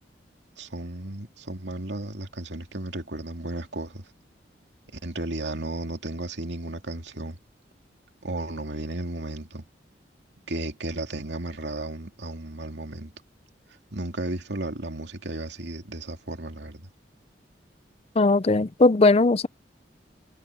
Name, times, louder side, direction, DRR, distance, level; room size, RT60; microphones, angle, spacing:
voice 1, 0.6-4.0 4.9-7.4 8.2-9.6 10.5-13.1 13.9-16.9, right 2 dB, 75° right, 2.4 m, -34 dB
voice 2, 18.2-19.5, left 3 dB, 35° left, 0.5 m, -19 dB
head